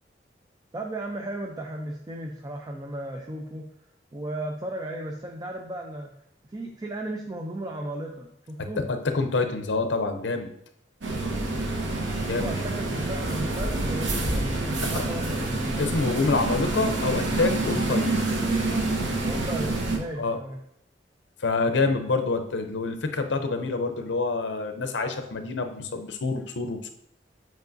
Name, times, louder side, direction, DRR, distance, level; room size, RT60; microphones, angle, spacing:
voice 1, 0.7-3.7 4.1-6.1 6.5-8.8 12.3-15.6 19.2-20.6, right 1 dB, 20° right, 1 dB, 0.5 m, -35 dB
voice 2, 8.6-10.5 12.3-12.5 14.8-15.1 15.7-18.3 20.2-20.4 21.4-26.9, left 3 dB, 75° left, 7 dB, 0.6 m, -27 dB
Quiet coffeeshop, 11.0-20.0, right 2 dB, 75° right, 0.9 m, -27 dB
8.0 x 4.6 x 2.6 m, 0.74 s
head